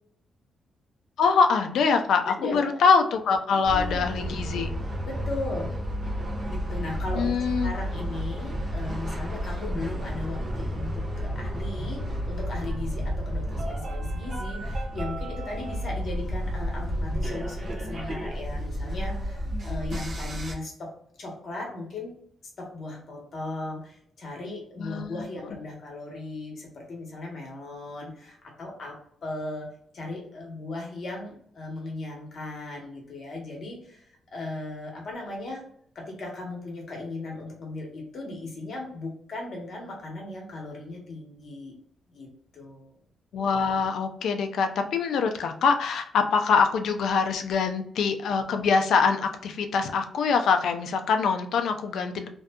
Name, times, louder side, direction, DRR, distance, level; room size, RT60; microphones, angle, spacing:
voice 1, 1.2-4.7 7.2-7.7 24.8-25.2 43.3-52.3, left 5 dB, 70° left, 6 dB, 0.4 m, -24 dB
voice 2, 2.4-2.8 3.5-4.0 5.1-5.7 6.5-20.9 21.2-22.2 22.6-34.0 34.3-35.6 35.9-41.7 42.1-42.3 42.5-42.9, left 2 dB, 45° left, -1 dB, 1.0 m, -37 dB
sound 1, 3.6-20.5, equal, 45° right, 0.6 m, -31 dB
2.6 x 2.3 x 2.2 m, 0.64 s
cardioid pair, 155°, 0 cm